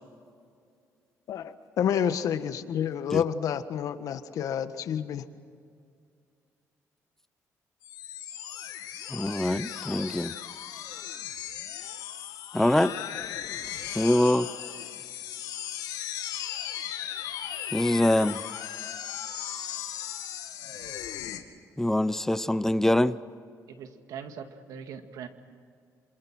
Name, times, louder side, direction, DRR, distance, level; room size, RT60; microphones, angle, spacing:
voice 1, 1.3-5.2, left 8 dB, 70° left, 10 dB, 1.5 m, -29 dB
sound 1, 7.8-21.4, left 11 dB, 85° left, 2.1 m, -37 dB
voice 2, 9.1-10.3 12.5-12.9 14.0-14.5 17.7-18.4 21.8-23.2, left 1 dB, 5° left, 15 dB, 0.7 m, -24 dB
voice 3, 23.7-25.3, right 7 dB, 80° right, 7 dB, 2.0 m, -41 dB
27.0 x 27.0 x 6.2 m, 2.2 s
cardioid pair, 105°, 6 cm